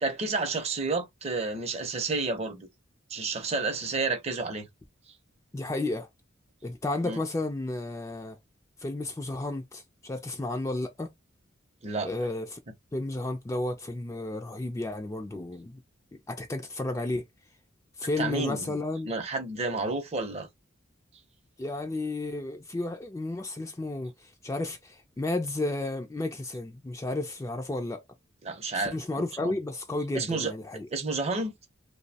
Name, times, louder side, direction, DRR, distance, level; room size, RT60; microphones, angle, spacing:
voice 1, 0.0-2.7 3.1-4.7 7.0-7.2 11.8-12.1 18.2-18.8 19.0-20.5 28.4-29.6 30.1-30.5 30.9-31.5, right 3 dB, 35° right, 0.6 m, -30 dB
voice 2, 5.5-6.1 6.6-8.4 8.8-11.1 12.0-12.6 12.9-15.8 16.3-17.3 18.0-19.1 21.6-24.1 24.4-28.0 28.7-30.9, left 2 dB, 15° left, 0.3 m, -32 dB
2.6 x 2.0 x 2.7 m
head